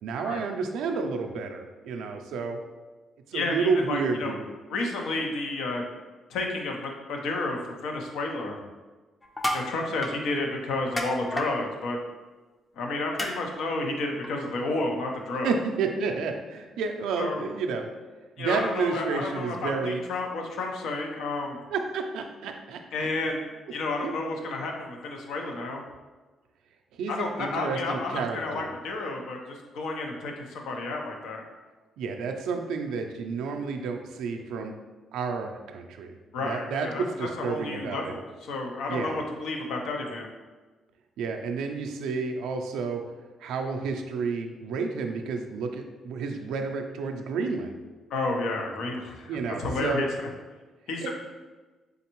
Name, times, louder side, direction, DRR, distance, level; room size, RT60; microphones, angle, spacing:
voice 1, 0.0-2.6 3.3-4.5 15.4-17.9 18.4-20.0 21.7-22.8 24.0-24.1 27.0-28.7 32.0-34.8 35.1-36.1 36.4-38.2 38.9-39.2 41.2-43.0 43.4-47.7 49.3-50.1 51.0-51.1, right 4 dB, 85° right, 4 dB, 0.4 m, -30 dB
voice 2, 3.3-4.3 4.7-5.8 6.3-8.6 9.5-12.0 12.8-15.5 17.2-17.4 18.4-21.6 22.9-23.4 23.7-25.8 27.1-31.4 36.3-40.3 48.1-50.1 50.9-51.1, left 2 dB, 80° left, 1 dB, 0.6 m, -31 dB
sound 1, 9.2-9.7 10.0-10.2 11.0-11.5 13.2-13.3 14.2-14.3, left 1 dB, 20° left, 0.5 m, -29 dB
3.8 x 3.4 x 2.9 m, 1.3 s
cardioid pair, 90°, 0 cm